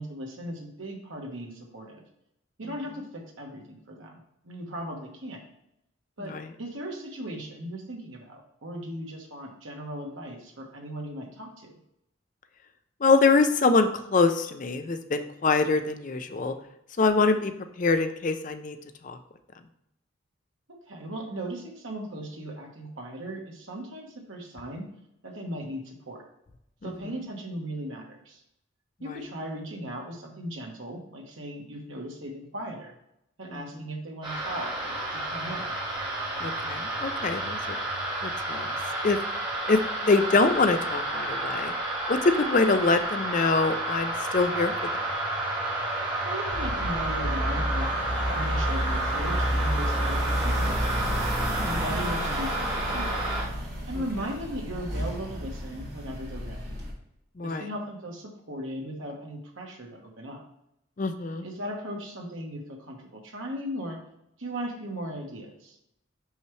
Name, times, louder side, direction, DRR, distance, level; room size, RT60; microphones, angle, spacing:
voice 1, 0.0-2.0 2.6-4.2 4.4-5.4 6.2-11.8 20.7-24.8 25.2-26.2 26.8-28.4 29.0-32.9 33.4-35.7 46.2-47.9 48.3-51.3 51.6-53.3 53.9-56.7 57.4-60.4 61.4-64.0 64.4-65.8, equal, 75° right, 0 dB, 1.3 m, -37 dB
voice 2, 13.0-16.5 17.0-17.5 17.8-18.8 19.0-19.2 26.8-26.9 29.1-29.2 33.5-33.6 36.4-37.8 38.2-38.7 39.0-39.2 39.7-41.7 42.1-44.7 51.6-51.7 57.4-57.7 61.0-61.5, left 3 dB, 40° left, 9 dB, 0.4 m, -24 dB
sound 1, 34.2-53.4, right 1 dB, 20° right, 1.7 m, -31 dB
sound 2, 46.5-56.9, equal, 50° right, 2.2 m, -31 dB
5.7 x 5.5 x 3.1 m, 0.81 s
head